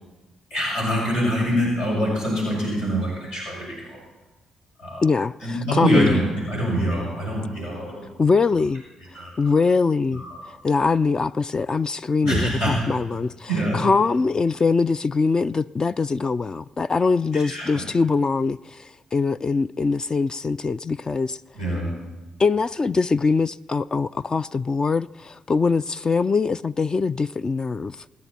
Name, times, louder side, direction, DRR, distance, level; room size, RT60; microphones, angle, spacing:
voice 1, 0.5-4.0 4.8-5.0 5.4-8.0 9.1-9.3 10.1-10.5 12.2-12.7 13.5-13.8 17.3-17.8 21.5-22.0, right 1 dB, 75° left, 6.1 m, -25 dB
voice 2, 5.0-6.2 8.2-8.8 9.4-10.2 10.6-21.4 22.4-28.0, left 4 dB, 35° left, 0.4 m, -22 dB
26.5 x 9.5 x 4.2 m
figure-of-eight pair, 40°, 2 cm